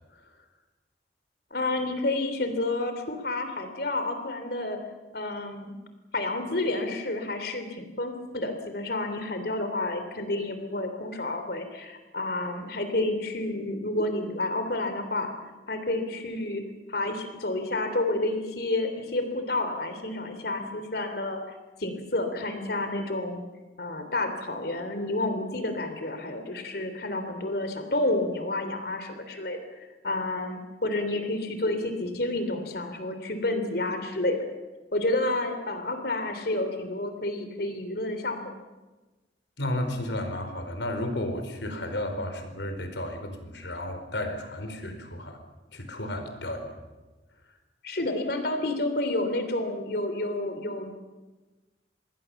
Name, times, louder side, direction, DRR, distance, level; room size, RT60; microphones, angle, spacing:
voice 1, 1.5-4.8 5.1-5.7 6.1-15.4 15.7-16.6 16.9-23.4 23.8-34.5 34.9-38.5 47.8-51.1, left 2 dB, 60° left, 7 dB, 3.3 m, -30 dB
voice 2, 39.6-45.4 45.7-46.7, left 1 dB, 85° left, 7 dB, 4.6 m, -33 dB
27.5 x 21.0 x 7.2 m, 1.2 s
head